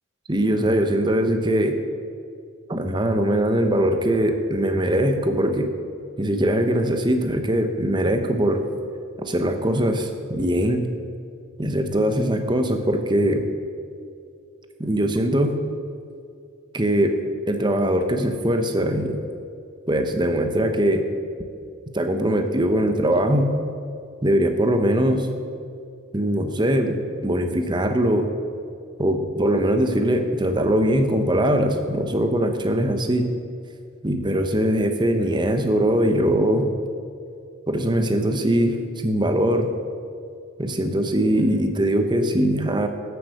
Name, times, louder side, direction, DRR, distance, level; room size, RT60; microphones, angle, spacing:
voice 1, 0.3-1.8 2.7-5.7 6.2-8.6 9.2-10.9 11.6-13.4 14.8-15.5 16.7-17.1 17.5-19.2 19.9-21.0 21.9-23.5 24.2-25.3 26.1-28.3 29.0-33.2 34.0-36.7 37.7-39.7 40.6-42.9, right 1 dB, 20° right, 6 dB, 1.0 m, -21 dB
13.5 x 8.0 x 6.5 m, 2.4 s
head